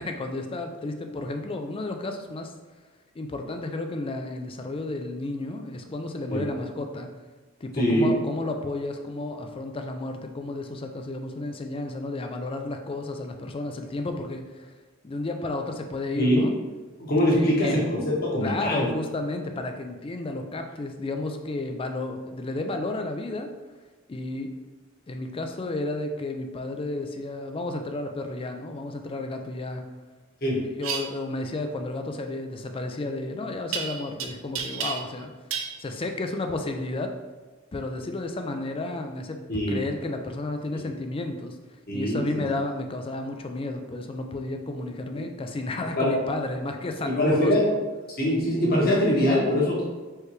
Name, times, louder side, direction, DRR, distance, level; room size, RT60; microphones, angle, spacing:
voice 1, 0.0-2.5 3.2-7.1 7.6-14.7 15.0-16.5 17.3-17.8 18.4-23.5 24.1-24.5 25.1-29.8 30.8-35.3 35.8-37.2 37.7-39.4 39.7-41.6 41.9-47.7, left 2 dB, 25° left, 5 dB, 0.4 m, -32 dB
voice 2, 7.7-8.1 16.1-16.4 17.0-18.9 30.4-30.6 39.5-39.8 41.9-42.4 46.0-46.1 47.2-47.6 48.2-49.9, equal, 45° left, -5 dB, 1.3 m, -23 dB
sound 1, 30.8-31.0 33.7-34.2 34.5-35.2 35.5-35.7, right 6 dB, 70° right, 0.5 m, -30 dB
4.6 x 3.3 x 3.2 m, 1.3 s
head